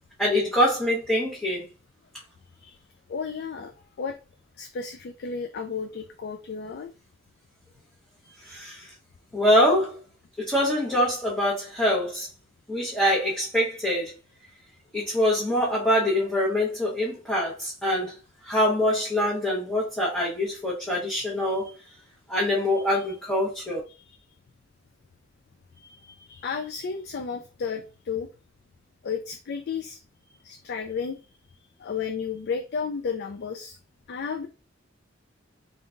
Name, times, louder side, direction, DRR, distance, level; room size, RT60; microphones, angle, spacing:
voice 1, 0.2-1.6 8.4-8.9 9.3-10.0 10.4-12.3 12.7-14.1 14.9-18.1 18.4-21.7 22.3-23.8, left 1 dB, 5° left, 1.0 m, -24 dB
voice 2, 3.1-3.7 4.0-4.2 4.6-6.9 8.2-8.6 21.4-21.7 22.7-23.1 23.9-24.2 26.0-28.3 29.0-30.0 30.3-31.2 31.8-33.8 34.1-34.5, left 6 dB, 55° left, 0.4 m, -33 dB
3.6 x 3.5 x 2.5 m
head